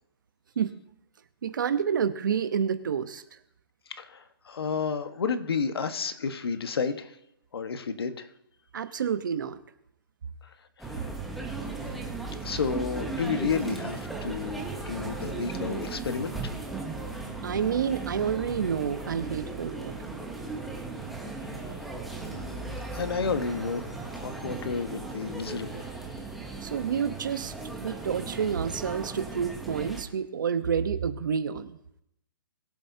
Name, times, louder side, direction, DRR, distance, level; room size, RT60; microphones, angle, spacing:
voice 1, 1.4-3.2 8.7-9.6 17.4-20.2 26.6-31.8, right 7 dB, 55° right, 11 dB, 0.9 m, -29 dB
voice 2, 3.9-7.1 7.5-8.3 10.8-11.1 11.6-11.9 12.4-16.5 22.3-25.9, left 5 dB, 90° left, 9 dB, 1.3 m, -32 dB
sound 1, 10.8-30.0, right 3 dB, ahead, 0.8 m, -37 dB
22.0 x 7.9 x 2.8 m, 0.79 s
hypercardioid pair, 180°, 12 cm